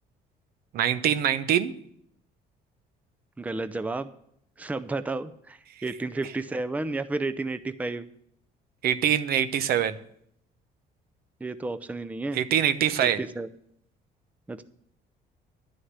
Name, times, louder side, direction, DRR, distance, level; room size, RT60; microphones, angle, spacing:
voice 1, 0.7-1.7 5.8-5.9 8.8-10.0 12.3-13.2, right 10 dB, 65° right, 12 dB, 0.8 m, -24 dB
voice 2, 3.4-4.1 4.6-8.1 11.4-12.4 13.0-13.5 14.5-14.6, right 3 dB, 10° right, 12 dB, 0.5 m, -32 dB
11.0 x 6.5 x 8.0 m, 0.70 s
cardioid pair, 110°, 17 cm